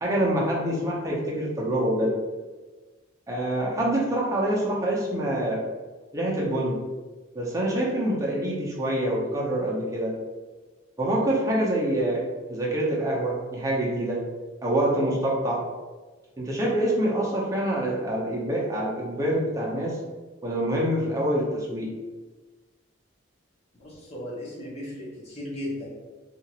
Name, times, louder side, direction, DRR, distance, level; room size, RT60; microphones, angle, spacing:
voice 1, 0.0-2.2 3.3-5.6 6.1-6.8 7.3-10.2 11.0-14.2 14.6-15.6 16.4-20.0 20.4-21.9, right 1 dB, 15° right, -4 dB, 0.6 m, -26 dB
voice 2, 23.8-25.8, left 1 dB, 30° left, -7 dB, 1.0 m, -36 dB
2.8 x 2.5 x 2.8 m, 1.3 s
head